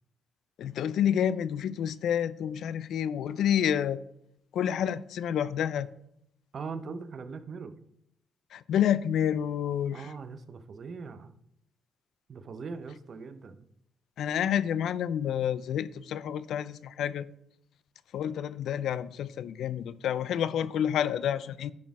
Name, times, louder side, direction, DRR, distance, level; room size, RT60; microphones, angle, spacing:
voice 1, 0.6-4.0 4.5-5.9 8.5-10.1 14.2-17.3 18.1-21.7, left 9 dB, 75° left, 0.4 m, -29 dB
voice 2, 6.5-7.7 9.9-11.3 12.3-13.7, right 5 dB, 50° right, 0.7 m, -40 dB
10.5 x 4.2 x 4.7 m
cardioid pair, 90°, 0 cm